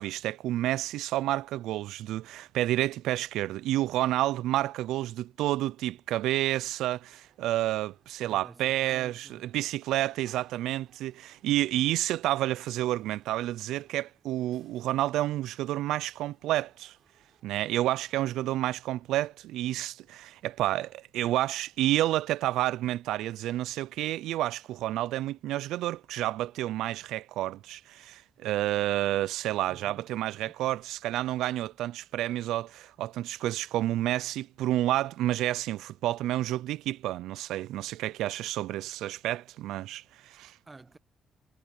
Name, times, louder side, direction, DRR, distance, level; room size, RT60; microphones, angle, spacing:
voice 1, 0.0-17.0 17.4-40.6, right 14 dB, 90° right, 0.3 m, -30 dB
sound 1, 7.1-18.2, right 9 dB, 65° right, 7.1 m, -66 dB
voice 2, 8.2-9.5 29.7-30.1 40.6-41.0, right 3 dB, 25° right, 1.3 m, -50 dB
cardioid pair, 90°, 0 cm